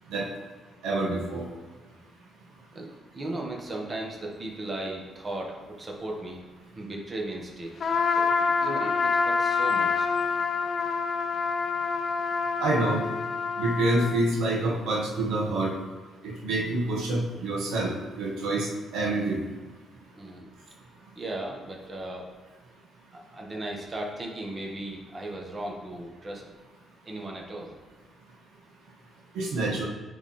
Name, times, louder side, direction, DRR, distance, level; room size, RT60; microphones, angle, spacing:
voice 1, 0.8-1.5 12.6-13.0 13.6-15.7 16.2-19.4 29.3-29.9, right 2 dB, 85° right, -2 dB, 1.5 m, -27 dB
voice 2, 3.1-6.4 6.7-7.7 8.1-10.1 20.1-20.5 21.1-22.3 23.1-26.4 27.0-27.7, right 1 dB, 30° right, -1 dB, 1.4 m, -36 dB
Trumpet, 7.8-14.2, left 5 dB, 50° left, 0.7 m, -26 dB
9.9 x 3.7 x 4.3 m, 1.4 s
cardioid pair, 90°, 0 cm